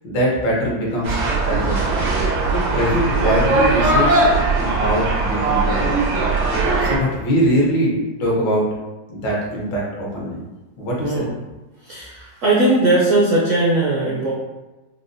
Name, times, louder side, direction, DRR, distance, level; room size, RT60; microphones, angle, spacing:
voice 1, 0.0-1.2 1.5-2.1 2.5-4.2 4.6-5.9 6.8-8.7 9.1-10.4 10.8-11.2, equal, 80° left, -4 dB, 1.6 m, -22 dB
sound 1, 1.0-7.0, right 3 dB, 90° right, 1.7 m, -19 dB
voice 2, 11.0-11.3 11.8-14.3, right 2 dB, 70° right, -6 dB, 0.7 m, -18 dB
4.8 x 2.0 x 2.5 m, 1.1 s
omnidirectional pair, 2.0 m